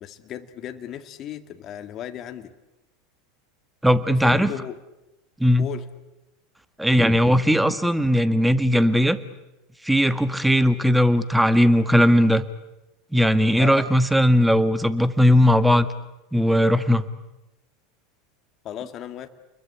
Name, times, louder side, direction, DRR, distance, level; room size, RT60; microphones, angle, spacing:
voice 1, 0.0-2.5 4.2-4.8 5.6-5.9 13.6-13.9 18.6-19.3, left 10 dB, 40° left, 8 dB, 2.0 m, -35 dB
voice 2, 3.8-4.5 5.4-5.7 6.8-9.2 9.8-12.4 13.1-15.9 16.3-17.1, equal, 5° right, 12 dB, 1.8 m, -18 dB
29.0 x 22.0 x 8.5 m, 0.96 s
hypercardioid pair, 90°, 0 cm